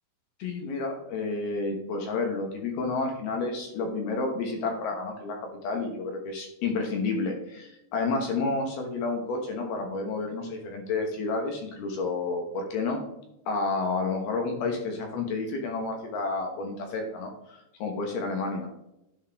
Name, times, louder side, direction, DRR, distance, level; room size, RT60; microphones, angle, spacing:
voice 1, 0.4-13.0 13.5-18.7, left 3 dB, 70° left, 2 dB, 2.9 m, -30 dB
11.5 x 4.6 x 3.4 m, 0.87 s
omnidirectional pair, 5.2 m